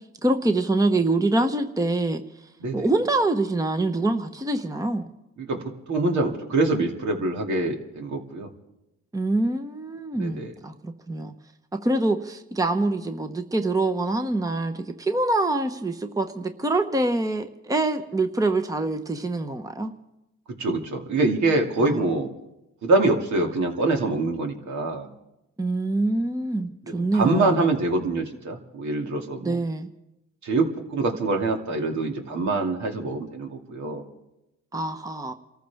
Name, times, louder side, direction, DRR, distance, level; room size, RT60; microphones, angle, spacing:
voice 1, 0.2-2.2 2.7-5.1 9.1-11.3 11.8-19.9 21.8-22.0 25.6-27.6 29.4-29.9 34.7-35.3, right 2 dB, 10° right, 8 dB, 1.0 m, -25 dB
voice 2, 5.4-8.5 10.1-10.5 20.6-22.3 22.8-25.1 27.0-29.6 30.4-34.0, right 2 dB, 70° right, 2 dB, 2.5 m, -25 dB
28.5 x 14.5 x 3.5 m, 0.91 s
cardioid pair, 90°, 30 cm